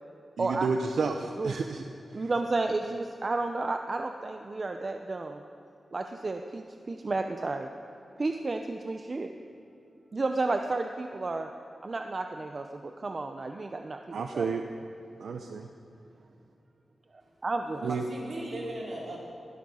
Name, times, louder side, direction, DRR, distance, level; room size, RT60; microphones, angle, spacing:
voice 1, 0.4-1.8 2.2-2.3 14.1-14.6 15.2-15.7 17.8-18.0, right 5 dB, 90° right, 5 dB, 0.7 m, -31 dB
voice 2, 2.1-5.4 5.9-7.7 8.2-9.3 10.1-11.5 11.8-14.5 17.4-18.0, right 3 dB, 40° right, 5 dB, 0.7 m, -32 dB
voice 3, 17.7-19.2, right 1 dB, 60° right, -5 dB, 4.8 m, -38 dB
19.5 x 12.5 x 5.6 m, 2.6 s
wide cardioid pair, 105°, 0 cm